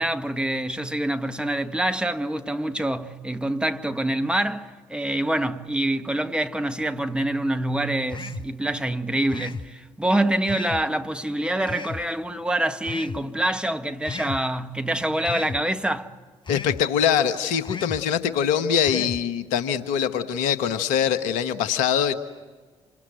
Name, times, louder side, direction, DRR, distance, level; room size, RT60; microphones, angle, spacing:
voice 1, 0.0-16.1, right 1 dB, 5° right, 1.8 m, -26 dB
sound 1, 8.1-8.5 9.3-9.7 10.5-10.8 11.7-12.0 12.8-13.2 14.1-14.4 15.3-15.6 16.5-16.8 17.6-18.0 18.8-19.2, left 4 dB, 35° left, 1.2 m, -34 dB
voice 2, 16.5-22.1, left 8 dB, 70° left, 1.5 m, -23 dB
27.5 x 27.0 x 8.0 m
hypercardioid pair, 45°, 14 cm